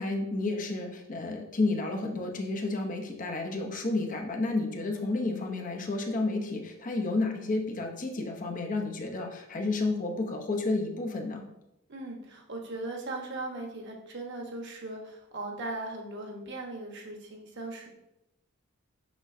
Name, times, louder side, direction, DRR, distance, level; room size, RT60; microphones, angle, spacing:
voice 1, 0.0-11.4, left 2 dB, 40° left, 2 dB, 0.8 m, -31 dB
voice 2, 11.9-17.9, right 2 dB, 60° right, 1 dB, 1.2 m, -38 dB
6.2 x 6.0 x 2.7 m, 0.87 s
head